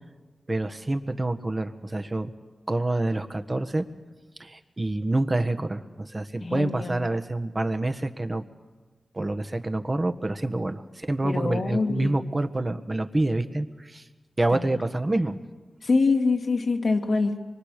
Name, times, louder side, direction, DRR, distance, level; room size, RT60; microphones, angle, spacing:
voice 1, 0.5-2.3 2.7-3.9 4.4-8.4 9.1-14.1 14.4-15.4, right 2 dB, 35° right, 9 dB, 1.5 m, -27 dB
voice 2, 6.4-7.1 11.2-12.3 14.5-14.7 15.8-17.4, left 3 dB, 65° left, 3 dB, 2.3 m, -25 dB
24.5 x 23.5 x 6.8 m, 1.3 s
cardioid pair, 50°, 0 cm